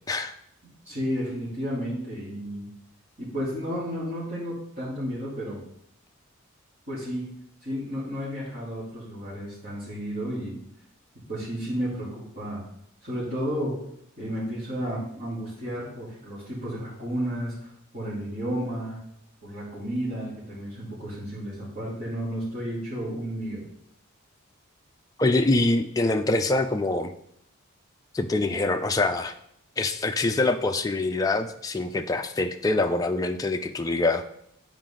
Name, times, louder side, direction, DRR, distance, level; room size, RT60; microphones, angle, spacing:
voice 1, 0.8-2.7 3.2-5.6 6.9-7.2 7.6-10.6 11.3-12.6 13.0-13.7 14.2-19.0 19.4-23.6, equal, 35° right, -14 dB, 3.0 m, -32 dB
voice 2, 25.2-27.1 28.1-29.3 29.8-34.2, left 2 dB, 15° left, 5 dB, 0.4 m, -24 dB
9.3 x 4.8 x 3.8 m, 0.73 s
head